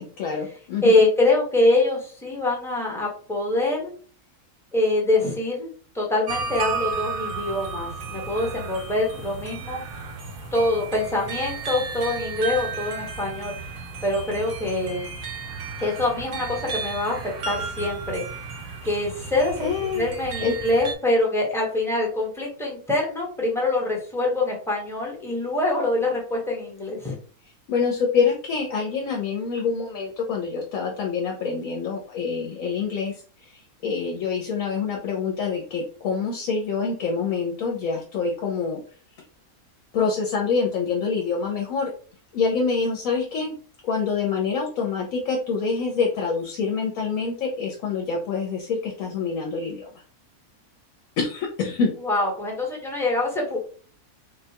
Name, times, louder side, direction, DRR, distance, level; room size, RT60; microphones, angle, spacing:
voice 1, 0.0-1.0 19.6-20.1 20.4-20.5 27.7-38.8 39.9-41.9 42.3-43.5 43.8-49.9 51.2-51.9, left 5 dB, 70° left, 1 dB, 1.0 m, -26 dB
voice 2, 0.8-3.9 4.7-5.7 5.9-9.9 10.5-15.1 15.8-18.2 18.8-19.6 19.9-27.1 52.0-53.6, left 2 dB, ahead, -3 dB, 0.7 m, -24 dB
sound 1, 6.3-20.9, right 5 dB, 60° right, 1.0 m, -33 dB
3.7 x 2.2 x 2.8 m, 0.42 s
omnidirectional pair, 1.6 m